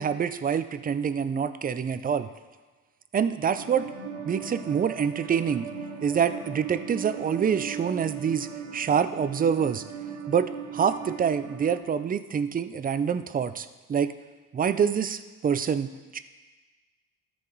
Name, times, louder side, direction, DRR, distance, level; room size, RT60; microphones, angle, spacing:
voice 1, 0.0-2.3 3.1-3.9 4.3-5.7 6.0-8.5 8.7-9.8 10.3-14.1 14.5-16.2, right 7 dB, 20° right, 12 dB, 0.4 m, -26 dB
sound 1, 3.6-11.8, right 7 dB, 90° right, 1.6 m, -38 dB
13.5 x 4.8 x 4.0 m, 1.3 s
supercardioid pair, 80°, 40 cm